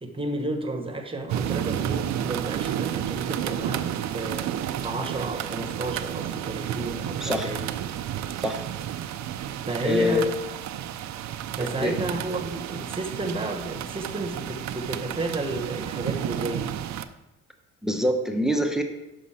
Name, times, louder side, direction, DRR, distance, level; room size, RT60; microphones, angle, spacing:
voice 1, 0.0-7.7 9.6-10.3 11.5-16.8, right 2 dB, 20° right, 4 dB, 1.2 m, -32 dB
sound 1, 1.3-17.1, right 10 dB, 65° right, 0.5 m, -31 dB
voice 2, 7.2-7.5 8.4-8.6 9.8-10.3 11.6-11.9 17.8-18.8, left 1 dB, ahead, 5 dB, 0.9 m, -25 dB
6.2 x 5.2 x 5.8 m, 0.99 s
cardioid pair, 90°, 30 cm